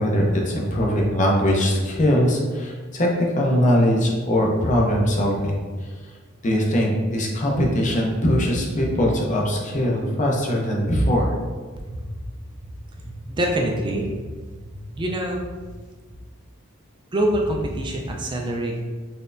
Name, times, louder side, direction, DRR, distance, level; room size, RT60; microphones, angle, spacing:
voice 1, 0.0-5.6 6.4-11.3, equal, 35° left, -1 dB, 0.7 m, -21 dB
voice 2, 13.1-14.1 14.6-15.4 17.1-18.8, right 1 dB, 25° right, 0 dB, 0.4 m, -25 dB
4.3 x 3.2 x 2.5 m, 1.5 s
head